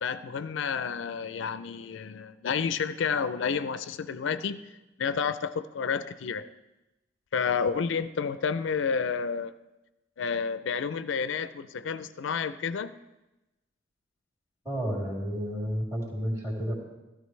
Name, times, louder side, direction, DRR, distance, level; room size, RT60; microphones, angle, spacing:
voice 1, 0.0-4.6 5.0-6.5 7.3-9.5 10.2-13.0, left 6 dB, 70° left, 13 dB, 0.4 m, -30 dB
voice 2, 14.6-16.7, equal, 20° right, -2 dB, 3.0 m, -31 dB
15.5 x 13.5 x 3.2 m, 1.0 s
head